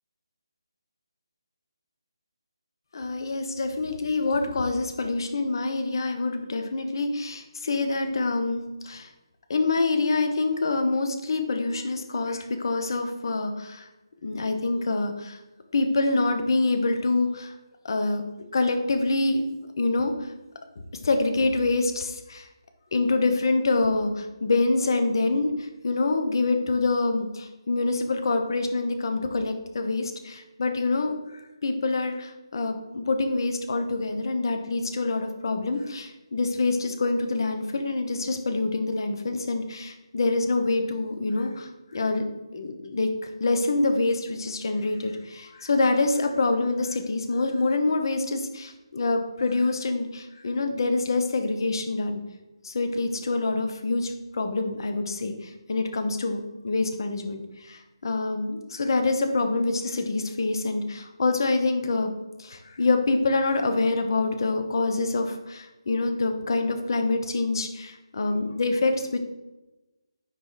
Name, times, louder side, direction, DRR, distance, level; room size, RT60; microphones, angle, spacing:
voice 1, 2.9-9.1 9.5-13.9 14.2-15.4 15.7-17.5 17.8-18.2 18.5-19.4 19.8-20.1 21.0-22.4 22.9-25.5 25.8-42.2 42.5-43.1 43.4-52.2 52.6-57.4 57.7-62.1 62.4-69.2, left 3 dB, 50° left, 6 dB, 1.0 m, -26 dB
9.5 x 3.4 x 4.0 m, 1.1 s
figure-of-eight pair, 160°, 3 cm